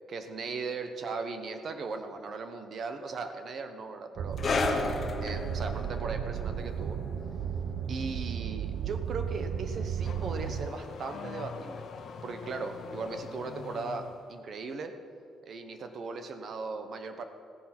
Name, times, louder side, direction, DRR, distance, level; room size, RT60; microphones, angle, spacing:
voice 1, 0.1-4.4 5.2-7.0 7.9-11.9 12.2-14.9 15.4-17.2, right 4 dB, 40° right, 7 dB, 1.0 m, -38 dB
sound 1, 4.2-10.7, right 8 dB, 60° right, 0.4 m, -34 dB
sound 2, 4.4-11.4 11.6-11.9 12.6-12.7, left 3 dB, 30° left, 1.2 m, -36 dB
Car / Accelerating revving vroom, 9.3-14.3, left 5 dB, 45° left, 0.7 m, -44 dB
16.0 x 10.0 x 6.0 m, 2.4 s
cardioid pair, 175°, 0 cm